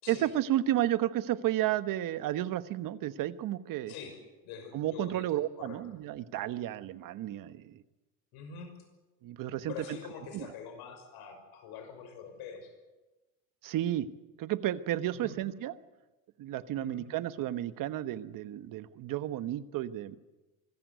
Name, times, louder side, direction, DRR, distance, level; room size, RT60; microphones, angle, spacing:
voice 1, 0.1-3.9 4.7-7.8 9.2-10.0 10.3-10.5 13.6-14.1 14.4-15.8 16.4-20.2, right 13 dB, 55° right, 13 dB, 1.2 m, -32 dB
voice 2, 3.9-5.2 5.6-5.8 8.3-8.7 9.6-12.7 15.1-15.4 16.7-17.1, left 7 dB, 75° left, 6 dB, 5.8 m, -45 dB
24.5 x 14.5 x 9.5 m, 1.1 s
cardioid pair, 130°, 38 cm